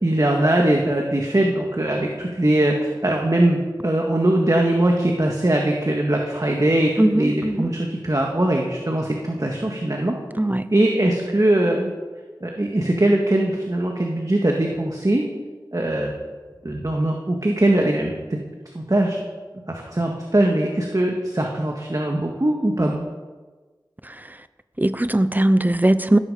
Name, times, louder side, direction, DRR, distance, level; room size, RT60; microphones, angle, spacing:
voice 1, 0.0-10.1 10.7-11.9 12.4-15.3 15.7-16.1 16.6-18.1 18.7-19.2 19.7-23.0, right 1 dB, 45° right, 0 dB, 1.9 m, -21 dB
voice 2, 7.0-7.7 10.4-10.7 24.8-26.2, right 1 dB, 20° right, 12 dB, 0.8 m, -19 dB
16.0 x 13.5 x 5.1 m, 1.3 s
wide cardioid pair, 45°, 8 cm